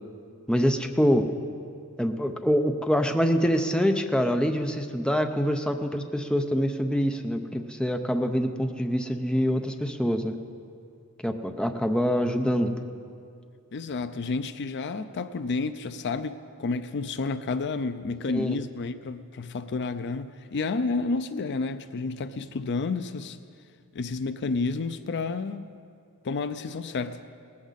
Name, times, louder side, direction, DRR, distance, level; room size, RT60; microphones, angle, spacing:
voice 1, 0.5-1.3 2.0-10.3 11.2-12.7 18.3-18.6, equal, 5° left, 6 dB, 0.6 m, -25 dB
voice 2, 13.7-23.4 23.9-25.7 26.2-27.2, left 4 dB, 55° left, 12 dB, 0.5 m, -30 dB
18.0 x 14.5 x 4.1 m, 2.4 s
head